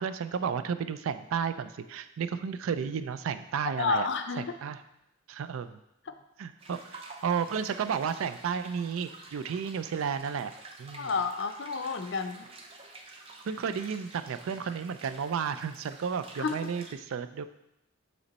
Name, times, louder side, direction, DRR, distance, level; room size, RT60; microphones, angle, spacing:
voice 1, 0.0-4.1 4.4-4.8 5.3-5.7 6.4-10.5 10.8-11.1 13.5-17.4, right 7 dB, 80° right, 11 dB, 0.3 m, -32 dB
voice 2, 3.8-4.4 6.1-6.2 10.9-12.5 16.4-16.7, left 5 dB, 55° left, 7 dB, 0.5 m, -30 dB
sound 1, 6.6-16.9, right 2 dB, 25° right, 0.5 m, -50 dB
8.0 x 3.1 x 4.0 m, 0.86 s
head